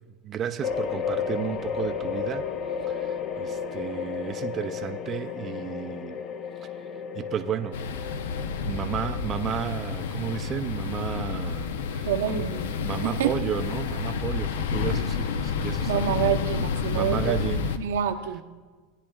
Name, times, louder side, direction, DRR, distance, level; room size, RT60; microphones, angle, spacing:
voice 1, 0.2-2.5 2.9-6.2 7.1-7.8 8.4-12.5 12.8-16.4 16.9-17.8, right 9 dB, 30° right, 7 dB, 0.4 m, -33 dB
sound 1, 0.6-13.4, left 6 dB, 35° left, 0.5 m, -34 dB
sound 2, 7.7-17.8, left 6 dB, 85° left, 0.6 m, -30 dB
voice 2, 12.1-12.8 13.0-13.3 15.9-18.4, right 10 dB, 85° right, 5 dB, 0.8 m, -27 dB
17.0 x 9.4 x 2.3 m, 1.4 s
supercardioid pair, 130°, 0 cm